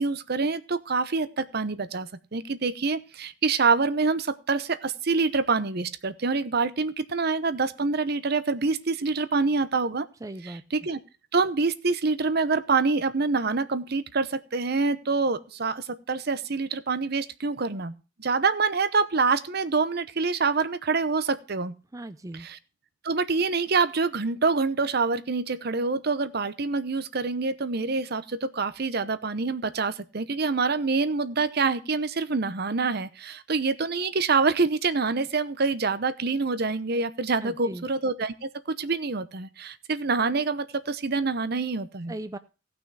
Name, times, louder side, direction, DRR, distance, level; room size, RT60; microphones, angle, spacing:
voice 1, 0.0-10.1 10.4-11.0 11.3-17.9 18.2-21.7 22.3-22.6 23.0-38.3 38.8-42.1, right 4 dB, 55° right, 14 dB, 0.8 m, -26 dB
voice 2, 10.2-10.6 21.9-22.5 37.4-37.9 42.1-42.4, right 1 dB, 15° right, 11 dB, 0.5 m, -37 dB
17.0 x 6.1 x 4.7 m, 0.33 s
head